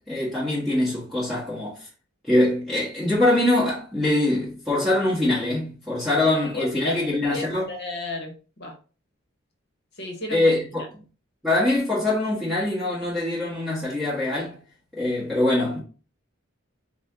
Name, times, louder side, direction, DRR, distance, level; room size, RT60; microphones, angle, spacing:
voice 1, 0.1-1.8 2.3-7.7 10.3-10.8 11.4-14.5 15.0-15.8, left 1 dB, ahead, 1.4 m, -23 dB
voice 2, 6.2-8.3 8.6-8.7 10.0-10.5, left 2 dB, 50° left, 1.2 m, -33 dB
5.5 x 2.4 x 2.8 m
head